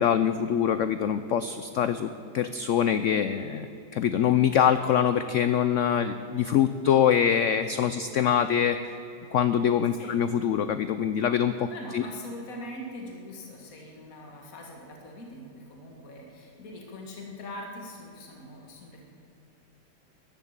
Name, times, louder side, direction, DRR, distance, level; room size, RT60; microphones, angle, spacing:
voice 1, 0.0-2.1 2.3-8.8 9.3-11.7 11.9-12.0, left 9 dB, 80° left, 11 dB, 0.6 m, -24 dB
voice 2, 11.7-19.1, left 1 dB, 55° left, 0 dB, 2.2 m, -42 dB
14.5 x 11.0 x 7.4 m, 2.8 s
omnidirectional pair, 1.8 m